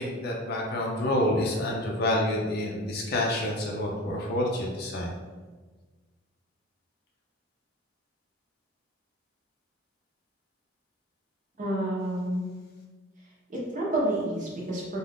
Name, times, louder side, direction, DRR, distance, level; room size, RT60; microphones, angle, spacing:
voice 1, 0.0-5.1, left 1 dB, 55° left, -1 dB, 0.4 m, -28 dB
voice 2, 11.6-12.4 13.5-15.0, right 1 dB, 40° right, -5 dB, 0.7 m, -29 dB
2.4 x 2.3 x 3.3 m, 1.3 s
head